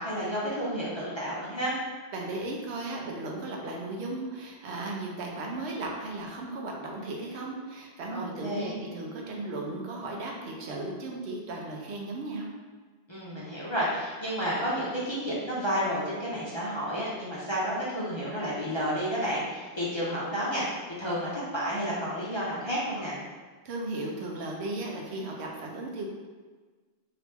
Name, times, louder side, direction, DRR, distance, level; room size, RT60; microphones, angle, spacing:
voice 1, 0.0-1.7 8.1-8.8 13.1-20.6 21.0-23.2, equal, 30° left, -8 dB, 0.6 m, -31 dB
voice 2, 2.1-12.5 23.6-26.1, right 2 dB, 75° right, 0 dB, 0.9 m, -36 dB
3.0 x 2.8 x 3.4 m, 1.4 s
omnidirectional pair, 1.1 m